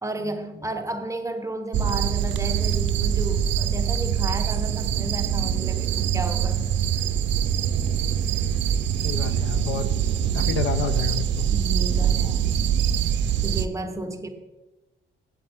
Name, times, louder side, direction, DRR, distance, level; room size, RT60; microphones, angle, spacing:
voice 1, 0.0-6.6 11.5-12.4 13.1-14.3, right 1 dB, 15° right, 6 dB, 0.9 m, -32 dB
sound 1, 1.7-13.7, right 9 dB, 65° right, 0.5 m, -24 dB
voice 2, 9.0-9.9 10.3-11.5, left 7 dB, 75° left, 11 dB, 0.7 m, -29 dB
8.6 x 7.9 x 3.6 m, 1.1 s
cardioid pair, 90°, 20 cm